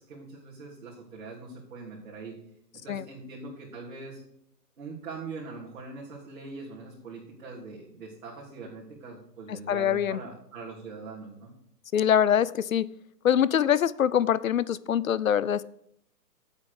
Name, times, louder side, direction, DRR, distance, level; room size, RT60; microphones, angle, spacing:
voice 1, 0.0-2.4 2.8-4.2 4.8-11.5, right 4 dB, 55° right, 3.4 m, -42 dB
voice 2, 9.5-10.2 11.9-12.9 13.2-15.6, left 9 dB, 55° left, 0.5 m, -24 dB
9.6 x 8.4 x 4.9 m
hypercardioid pair, 175°, 49 cm